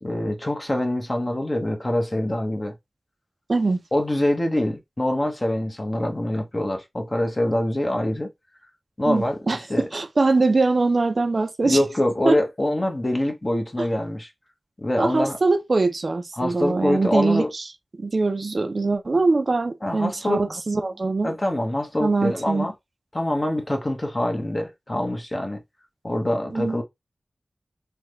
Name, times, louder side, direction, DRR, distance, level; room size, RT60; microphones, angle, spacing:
voice 1, 0.0-2.7 3.9-8.3 9.0-9.8 11.6-14.3 14.8-15.4 16.4-17.5 19.8-20.4 21.2-22.7 23.1-25.6 26.0-26.8, left 1 dB, 40° left, 1.0 m, -24 dB
voice 2, 3.5-3.8 9.1-11.8 12.2-12.4 13.8-13.9 15.0-17.6 18.0-21.3 22.0-22.7 26.5-26.8, right 3 dB, 65° right, 0.4 m, -22 dB
3.4 x 2.2 x 3.1 m
wide cardioid pair, 50°, 0 cm